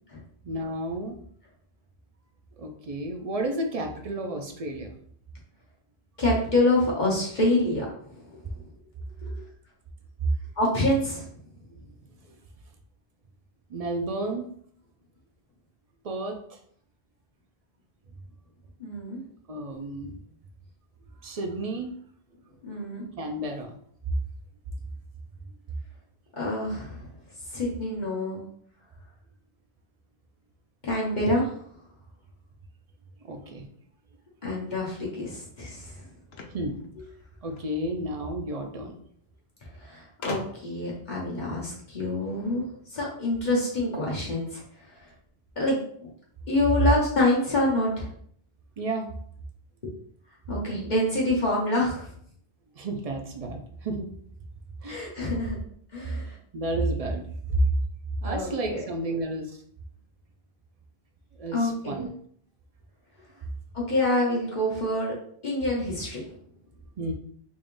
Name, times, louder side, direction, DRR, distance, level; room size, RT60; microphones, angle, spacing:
voice 1, 0.4-1.2 2.6-5.0 13.7-14.5 16.0-16.6 19.5-20.2 21.2-21.9 23.2-23.7 33.2-33.7 36.5-36.8 37.4-39.0 48.8-49.1 52.8-54.1 54.8-55.0 56.5-57.6 58.2-59.6 61.4-62.1 67.0-67.1, right 1 dB, 45° right, 3 dB, 0.5 m, -31 dB
voice 2, 6.2-8.4 10.6-11.3 18.8-19.2 22.6-23.0 26.4-27.1 27.5-28.4 30.8-31.5 34.4-35.9 39.8-44.6 45.6-46.1 46.5-48.1 49.8-49.9 50.5-52.1 54.8-55.6 55.9-56.3 58.2-58.9 61.5-61.9 63.7-65.1 65.4-66.3, left 1 dB, 50° left, -4 dB, 1.1 m, -26 dB
sound 1, 36.3-37.7 38.8-38.9 39.1-39.2 40.2-40.9, left 4 dB, 80° left, 0.9 m, -39 dB
3.7 x 3.5 x 2.5 m, 0.62 s
omnidirectional pair, 1.0 m